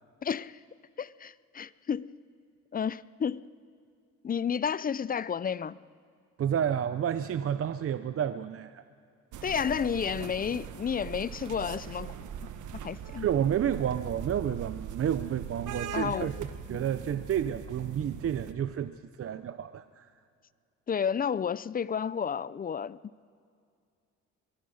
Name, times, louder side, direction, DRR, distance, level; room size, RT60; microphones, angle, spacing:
voice 1, 0.2-0.6 1.0-2.2 2.7-3.5 4.2-5.8 9.4-12.2 12.7-13.3 15.9-16.3 20.9-23.0, left 7 dB, 30° left, 0.5 m, -31 dB
voice 2, 6.4-8.8 13.2-20.1, right 9 dB, 50° right, 0.7 m, -30 dB
sound 1, 9.3-18.5, right 7 dB, 75° right, 1.2 m, -41 dB
24.5 x 16.5 x 6.4 m
cardioid pair, 90°, 30 cm